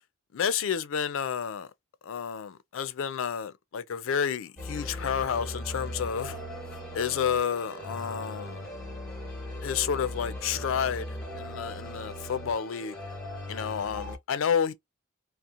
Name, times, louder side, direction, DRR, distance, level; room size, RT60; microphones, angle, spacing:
voice 1, 0.3-1.7 2.0-6.4 6.9-8.6 9.6-13.0 13.5-14.7, left 7 dB, 75° left, 0.4 m, -30 dB
sound 1, 4.6-14.2, left 1 dB, 5° left, 0.8 m, -39 dB
sound 2, 6.3-12.4, right 5 dB, 50° right, 0.4 m, -50 dB
2.7 x 2.0 x 2.4 m
head